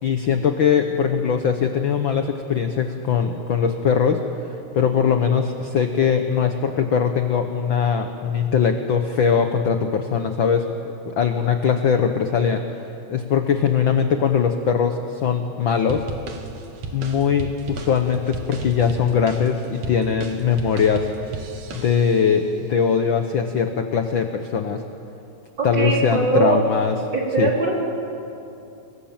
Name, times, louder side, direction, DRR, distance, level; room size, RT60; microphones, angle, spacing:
voice 1, 0.0-12.6 13.1-16.1 16.9-21.1 21.7-24.8 25.6-27.0 27.4-27.5, left 7 dB, 65° left, 6 dB, 1.2 m, -21 dB
sound 1, 15.9-22.3, right 4 dB, 65° right, 3.1 m, -35 dB
voice 2, 25.6-26.6 27.1-27.8, right 3 dB, 35° right, -3 dB, 5.1 m, -21 dB
28.5 x 23.5 x 7.3 m, 2.7 s
omnidirectional pair, 3.7 m